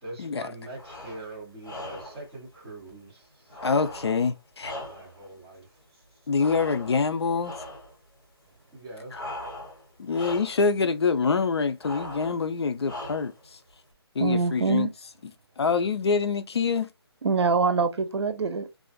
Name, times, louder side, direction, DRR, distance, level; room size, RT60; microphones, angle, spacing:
voice 1, 0.0-3.7 4.7-6.3 8.7-9.2, right 2 dB, ahead, 0.6 m, -43 dB
sound 1, 0.7-1.3 1.6-2.3 3.5-5.3 6.4-7.1 7.4-7.9 9.1-9.9 10.1-10.7 11.8-12.4 12.8-13.4, left 1 dB, 50° left, 1.3 m, -39 dB
voice 2, 3.6-4.7 6.3-7.5 10.0-13.6 14.1-14.9 15.6-16.9, left 5 dB, 75° left, 0.5 m, -25 dB
voice 3, 14.2-14.9 17.2-18.7, right 4 dB, 80° right, 0.6 m, -24 dB
2.4 x 2.2 x 2.3 m
hypercardioid pair, 180°, 14 cm